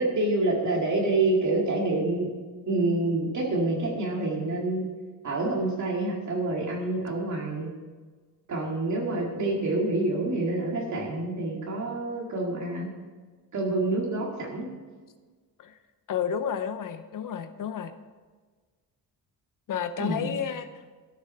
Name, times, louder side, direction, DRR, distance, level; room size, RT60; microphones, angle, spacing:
voice 1, 0.0-2.3 2.7-4.8 5.2-7.7 8.5-12.9 13.5-14.7 20.0-20.3, right 2 dB, 50° right, -1 dB, 2.1 m, -27 dB
voice 2, 16.1-17.9 19.7-20.7, left 8 dB, 60° left, 10 dB, 0.7 m, -31 dB
13.5 x 7.4 x 5.6 m, 1.4 s
wide cardioid pair, 165°, 37 cm